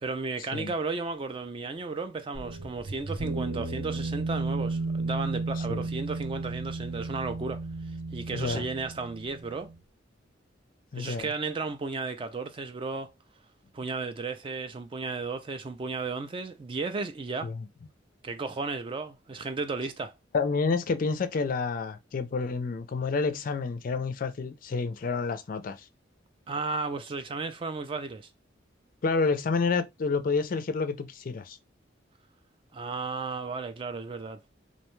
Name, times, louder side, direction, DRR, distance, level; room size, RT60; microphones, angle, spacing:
voice 1, 0.0-7.6 8.1-9.7 10.9-13.1 13.7-17.5 18.2-20.1 26.5-28.3 32.7-34.4, right 4 dB, 25° right, 0.3 m, -34 dB
sound 1, 2.3-9.8, right 3 dB, 80° right, 0.7 m, -34 dB
voice 2, 8.3-8.7 10.9-11.3 17.4-17.7 20.3-25.8 29.0-31.6, left 4 dB, 45° left, 0.4 m, -29 dB
2.6 x 2.2 x 3.0 m
head